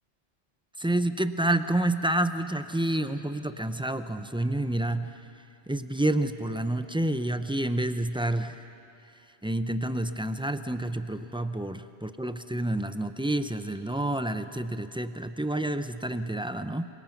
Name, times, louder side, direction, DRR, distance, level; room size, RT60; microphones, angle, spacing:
voice 1, 0.8-5.1 5.7-8.6 9.4-16.9, right 1 dB, 10° right, 10 dB, 0.3 m, -29 dB
28.5 x 24.0 x 5.9 m, 2.7 s
omnidirectional pair, 1.2 m